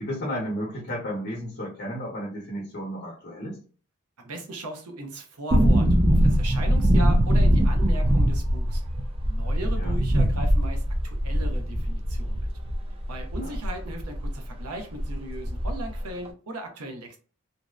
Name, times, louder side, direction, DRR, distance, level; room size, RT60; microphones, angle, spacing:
voice 1, 0.0-3.6 9.8-10.0 13.4-13.6, equal, 45° left, -3 dB, 0.8 m, -33 dB
voice 2, 4.2-8.8 9.2-12.5 13.1-17.2, right 1 dB, 85° right, 3 dB, 0.7 m, -37 dB
sound 1, 5.5-14.3 14.6-14.7 15.0-16.0 16.3-16.4, equal, 25° right, 0.3 m, -22 dB
2.6 x 2.0 x 2.3 m, 0.39 s
head